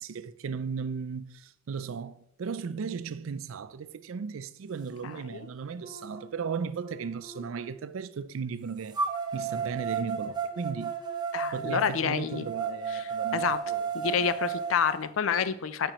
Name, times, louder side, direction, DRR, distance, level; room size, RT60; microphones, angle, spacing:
voice 1, 0.0-9.0 9.3-10.9 11.5-14.3, right 6 dB, 85° right, 0.4 m, -36 dB
voice 2, 5.0-5.5 11.3-12.4 12.9-13.6 13.9-15.9, left 7 dB, 80° left, 0.4 m, -29 dB
sound 1, 5.1-5.2 5.8-7.7 8.9-15.0, right 6 dB, 20° right, 0.7 m, -34 dB
8.9 x 5.2 x 3.0 m
head